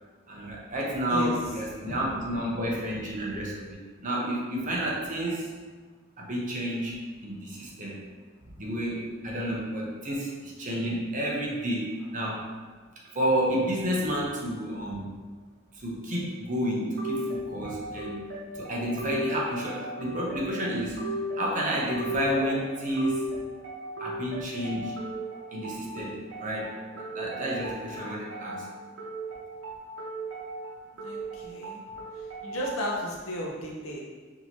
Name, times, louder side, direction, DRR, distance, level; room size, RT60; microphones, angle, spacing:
voice 1, 0.3-5.5 6.2-8.0 8.6-12.4 13.1-15.2 15.7-18.3 18.5-21.0 21.4-23.3 24.0-25.0 25.5-28.7, equal, 40° right, -3 dB, 0.8 m, -30 dB
sound 1, 17.0-33.0, right 1 dB, 70° right, 1.0 m, -37 dB
voice 2, 31.0-31.8 32.4-34.0, equal, 85° left, -3 dB, 0.9 m, -34 dB
4.7 x 2.9 x 2.8 m, 1.4 s
head